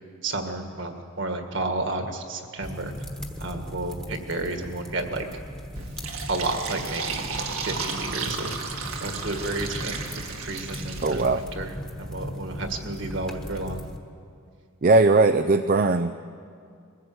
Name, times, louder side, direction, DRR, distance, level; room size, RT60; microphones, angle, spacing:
voice 1, 0.2-3.0 3.4-5.3 6.3-8.5 9.0-11.7 12.0-13.8, right 2 dB, 55° right, 5 dB, 1.8 m, -31 dB
sound 1, 2.6-14.0, equal, 5° left, 1.3 m, -38 dB
Fill (with liquid), 5.7-11.4, right 5 dB, 80° right, 2.0 m, -34 dB
voice 2, 11.0-11.4 14.8-16.2, right 3 dB, 40° right, 10 dB, 0.4 m, -19 dB
22.5 x 15.5 x 7.9 m, 2.3 s
head